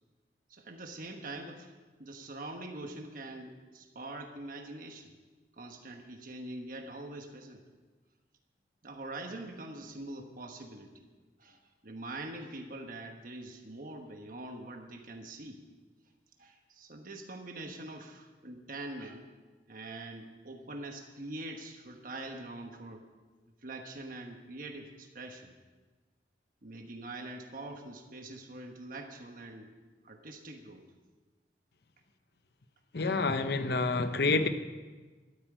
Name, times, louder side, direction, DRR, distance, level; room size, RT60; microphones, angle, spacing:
voice 1, 0.5-1.7 2.0-5.1 5.6-7.6 8.8-11.0 11.4-15.6 16.4-19.3 19.7-23.1 23.6-25.5 26.6-29.7 30.0-30.8, right 2 dB, 50° right, 4 dB, 1.2 m, -44 dB
voice 2, 32.9-34.5, left 3 dB, 65° left, 10 dB, 0.8 m, -28 dB
13.5 x 8.8 x 8.9 m, 1.3 s
head